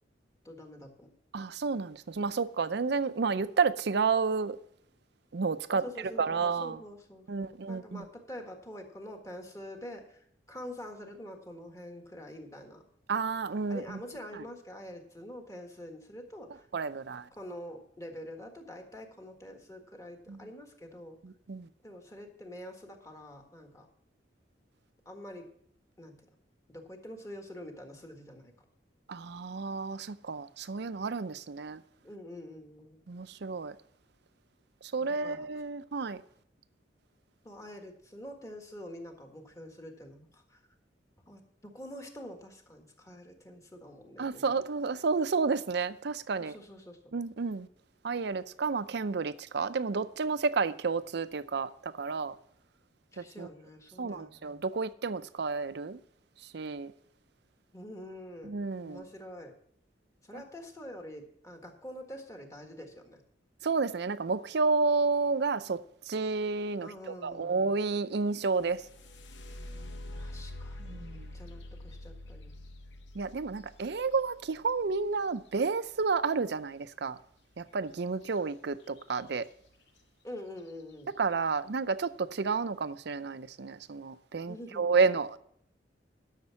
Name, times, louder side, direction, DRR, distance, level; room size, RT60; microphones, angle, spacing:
voice 1, 0.4-1.1 5.7-12.8 13.7-16.7 17.3-21.2 21.8-23.9 25.0-25.5 26.0-26.2 26.7-28.5 32.0-33.0 35.0-35.5 37.4-40.6 41.3-44.5 46.4-47.0 53.1-54.6 57.7-58.5 58.8-59.5 60.2-63.2 66.8-67.7 70.1-72.6 80.2-81.1 84.5-85.0, left 1 dB, 20° left, 1.6 m, -46 dB
voice 2, 1.3-4.6 5.3-5.8 6.2-6.8 7.3-8.0 13.1-14.0 14.3-14.4 16.7-17.3 20.3-20.4 21.2-21.7 29.1-31.8 33.1-33.8 34.8-36.2 44.2-46.5 47.1-47.7 48.0-52.4 53.2-53.5 54.0-56.0 56.5-56.9 58.4-59.0 60.3-60.4 63.6-65.8 66.1-68.8 70.8-71.3 73.1-77.2 77.6-79.5 81.2-85.4, right 4 dB, 65° right, 0.5 m, -31 dB
sound 1, 68.3-76.2 78.2-78.4 78.8-79.4 80.0-80.1 80.6-80.9, left 1 dB, 75° left, 0.9 m, -46 dB
12.0 x 6.6 x 5.8 m
head